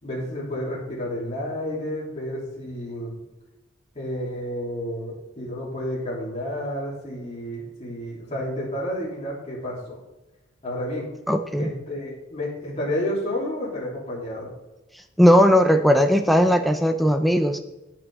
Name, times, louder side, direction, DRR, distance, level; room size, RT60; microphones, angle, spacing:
voice 1, 0.0-3.1 3.9-10.0 10.6-11.1 11.6-14.5, left 1 dB, 35° left, -6 dB, 3.3 m, -30 dB
voice 2, 11.3-11.7 15.2-17.6, equal, ahead, 6 dB, 0.5 m, -18 dB
17.0 x 6.1 x 3.6 m, 1.0 s
head